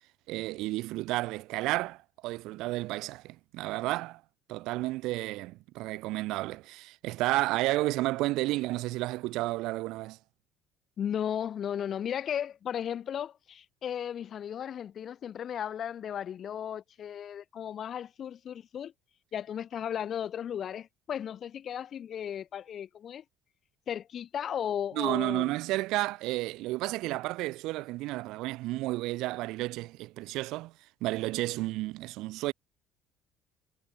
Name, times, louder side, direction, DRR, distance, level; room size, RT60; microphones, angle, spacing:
voice 1, 0.3-4.2 4.5-10.2 24.9-30.7 31.0-32.5, right 19 dB, 75° right, 0.4 m, -32 dB
voice 2, 11.0-18.9 19.3-23.2 23.9-25.5, left 9 dB, 45° left, 1.6 m, -35 dB
cardioid pair, 110°, 0 cm